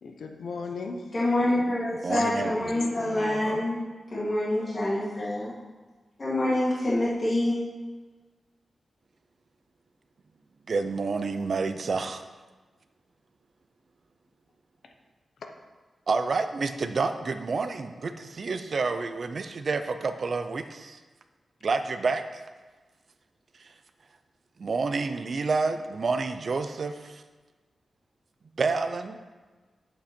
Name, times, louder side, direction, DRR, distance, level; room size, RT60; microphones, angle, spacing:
voice 1, 0.0-1.1 2.1-2.5 2.9-3.6 15.4-15.5, left 4 dB, 75° left, 4 dB, 0.9 m, -37 dB
voice 2, 1.1-3.8 4.1-5.5 6.2-7.6, left 1 dB, 30° left, -9 dB, 2.0 m, -26 dB
voice 3, 2.0-2.7 10.7-12.2 16.1-21.0 21.6-22.4 23.6-23.7 24.6-27.2 28.6-29.2, right 4 dB, 45° right, 9 dB, 0.5 m, -29 dB
8.4 x 7.6 x 4.4 m, 1.3 s
wide cardioid pair, 175°, 0 cm